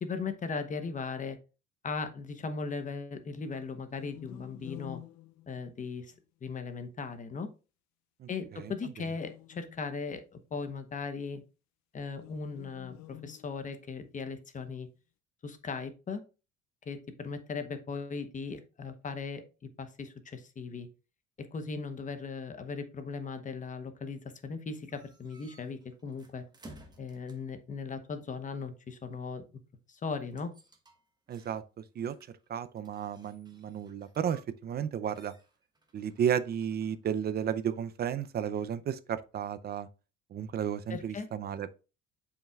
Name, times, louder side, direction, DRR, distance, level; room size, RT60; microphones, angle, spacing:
voice 1, 0.0-1.4 1.8-5.0 5.5-6.1 6.4-7.5 8.3-11.4 11.9-14.9 15.4-16.2 16.9-20.9 21.4-26.4 27.0-29.4 29.9-30.5 40.9-41.3, left 4 dB, 25° left, 0.9 m, -38 dB
sound 1, 3.9-6.2 9.0-10.3 12.1-14.0, left 16 dB, 70° left, 0.5 m, -49 dB
voice 2, 8.2-8.7 31.3-32.1 32.5-35.3 35.9-39.9 40.3-41.9, right 8 dB, 35° right, 0.5 m, -33 dB
sound 2, 24.9-27.6 30.2-34.8 35.1-38.5, right 1 dB, 15° right, 1.1 m, -57 dB
7.2 x 5.7 x 2.3 m
cardioid pair, 135°, 29 cm